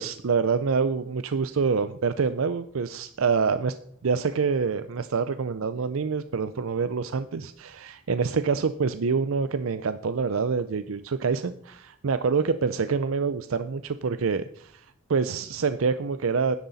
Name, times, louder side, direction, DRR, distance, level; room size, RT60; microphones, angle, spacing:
voice 1, 0.0-3.8 4.0-16.5, right 5 dB, 85° right, 12 dB, 0.5 m, -26 dB
12.0 x 10.0 x 4.1 m, 0.69 s
head